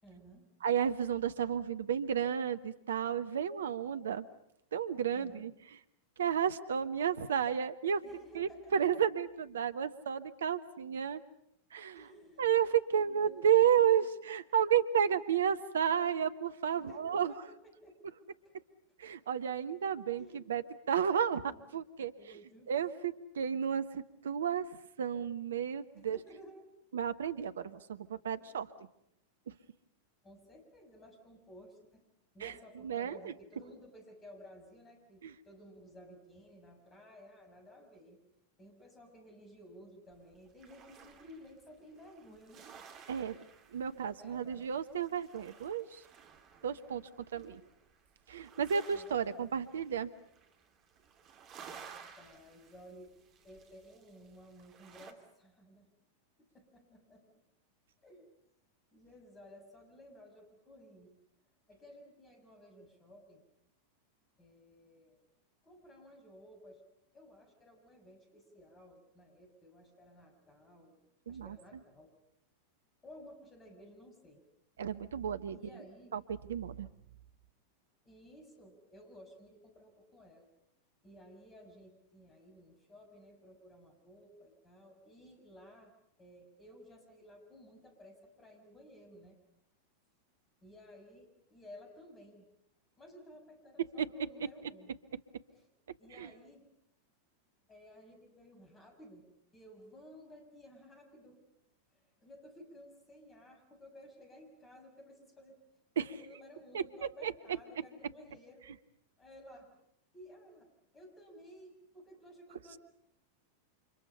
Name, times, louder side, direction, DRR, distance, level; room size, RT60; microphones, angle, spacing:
voice 1, 0.0-0.5 5.1-5.5 8.0-8.8 12.0-12.6 12.9-14.1 16.8-18.0 18.4-18.5 20.2-20.4 21.5-21.7 22.2-22.7 25.9-26.6 28.3-28.6 30.2-32.0 32.3-38.2 38.6-42.6 44.1-44.7 47.3-47.5 48.9-49.5 51.6-51.9 52.2-53.1 53.4-55.9 56.4-57.3 58.0-58.2 58.9-61.2 61.7-63.4 64.4-65.2 65.6-66.8 67.1-71.0 71.3-72.1 73.0-74.4 75.5-76.2 78.0-80.5 81.0-85.9 86.2-89.4 90.6-92.5 93.0-94.9 95.5-95.7 96.0-96.7 97.7-101.5 101.9-105.6 106.0-108.7 109.2-109.7 110.1-112.8, equal, 20° left, 5 dB, 6.2 m, -56 dB
voice 2, 0.6-4.3 4.7-5.5 6.2-8.0 8.3-11.2 11.7-12.0 12.4-17.3 19.0-21.4 21.7-22.1 22.7-24.6 25.0-26.2 26.9-28.7 29.5-29.6 32.4-33.3 35.2-35.3 43.1-43.4 43.7-46.0 46.6-47.0 47.3-47.6 48.3-50.1 71.3-71.5 74.8-75.6 76.1-76.2 76.5-76.9 94.0-94.1 96.2-96.3 106.0-106.1 106.7-107.6, right 8 dB, 65° right, 13 dB, 1.1 m, -32 dB
sound 1, 40.1-55.1, right 7 dB, 35° right, 3.0 m, -56 dB
30.0 x 27.0 x 5.7 m, 0.75 s
figure-of-eight pair, 90°, 0 cm